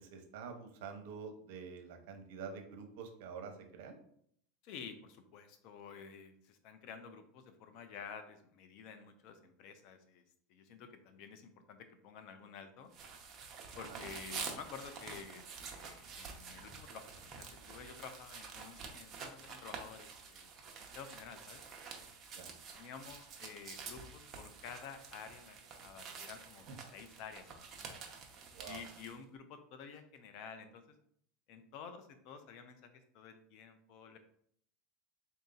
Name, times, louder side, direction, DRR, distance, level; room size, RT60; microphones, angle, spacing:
voice 1, 0.0-4.0 13.9-14.0 22.3-22.5 26.7-26.8 28.5-28.8, right 5 dB, 70° right, 5 dB, 0.8 m, -47 dB
voice 2, 4.6-10.2 10.5-12.9 13.8-21.6 22.7-25.6 25.8-26.7 26.9-27.9 28.6-31.0 31.5-32.9 33.1-34.2, left 6 dB, 55° left, 8 dB, 0.6 m, -51 dB
sound 1, 12.9-29.1, right 5 dB, 30° right, 0.8 m, -48 dB
3.9 x 2.7 x 3.8 m, 0.65 s
supercardioid pair, 135°, 0 cm